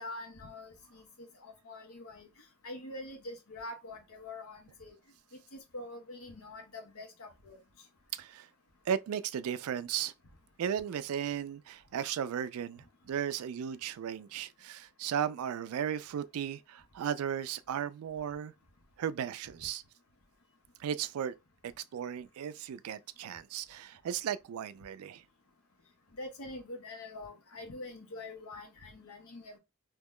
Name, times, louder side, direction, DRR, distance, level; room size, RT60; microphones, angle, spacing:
voice 1, 0.0-2.3 2.6-4.9 5.5-7.6 26.2-29.6, left 2 dB, 80° left, 0.9 m, -45 dB
voice 2, 8.1-8.5 8.9-10.1 10.6-18.5 19.0-19.8 20.8-21.3 21.6-25.2, right 8 dB, 80° right, 0.3 m, -35 dB
2.9 x 2.1 x 3.6 m
head